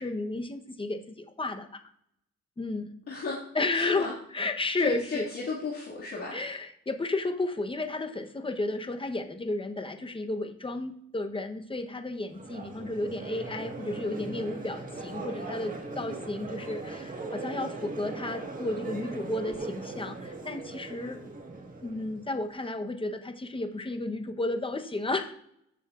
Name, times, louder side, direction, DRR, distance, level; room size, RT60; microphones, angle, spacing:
voice 1, 0.0-1.8 2.6-2.9 3.5-5.3 6.3-21.2 21.8-25.3, left 2 dB, 15° left, 7 dB, 1.0 m, -32 dB
voice 2, 3.1-3.4 3.7-4.1 4.8-6.4 16.0-16.2, left 4 dB, 50° left, -7 dB, 2.2 m, -34 dB
Crowd, 12.3-22.5, right 3 dB, 25° right, 1.6 m, -39 dB
14.0 x 6.9 x 2.5 m, 0.74 s
cardioid pair, 90°, 30 cm